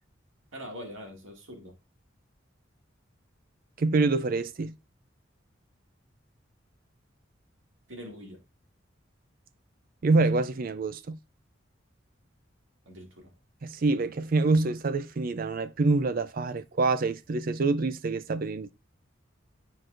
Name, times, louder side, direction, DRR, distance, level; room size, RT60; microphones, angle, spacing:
voice 1, 0.5-1.7 7.9-8.4 12.9-13.3, equal, 85° right, 2.2 m, -43 dB
voice 2, 3.8-4.8 10.0-11.2 13.6-18.7, right 3 dB, 45° right, 0.4 m, -26 dB
9.9 x 4.6 x 2.5 m
head